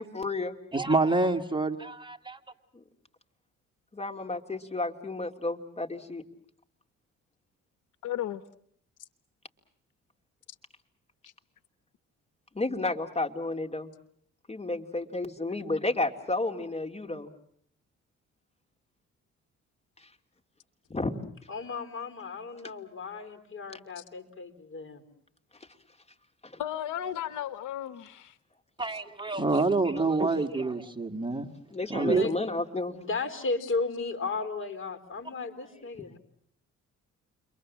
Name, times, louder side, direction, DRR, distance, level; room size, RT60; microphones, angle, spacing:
voice 1, 0.0-0.6 2.7-2.8 3.9-6.2 12.5-13.9 14.5-17.3 20.0-20.1 20.9-21.2 26.4-26.6 30.0-30.1 31.7-33.0, left 2 dB, 20° left, 5 dB, 2.7 m, -32 dB
voice 2, 0.7-2.4 28.8-31.5 31.9-32.3, right 3 dB, 15° right, 6 dB, 1.9 m, -27 dB
voice 3, 8.0-8.4 24.0-24.1 26.6-28.3, left 11 dB, 80° left, 14 dB, 1.1 m, -34 dB
voice 4, 21.5-25.0 32.1-32.6 32.9-36.2, left 3 dB, 40° left, 9 dB, 4.0 m, -35 dB
30.0 x 23.5 x 7.4 m, 0.65 s
cardioid pair, 90°, 30 cm